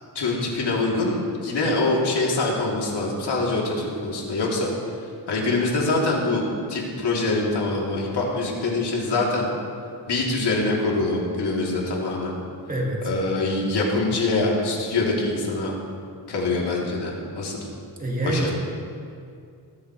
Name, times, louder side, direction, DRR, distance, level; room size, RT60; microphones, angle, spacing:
voice 1, 0.1-4.7 5.3-6.4 6.7-9.5 10.1-12.3 13.0-15.7 16.3-17.7 18.2-18.5, left 2 dB, 75° left, -3 dB, 3.1 m, -24 dB
voice 2, 12.7-13.1 18.0-18.5, right 2 dB, 20° right, -2 dB, 2.0 m, -26 dB
20.0 x 13.0 x 3.2 m, 2.3 s
wide cardioid pair, 135°, 41 cm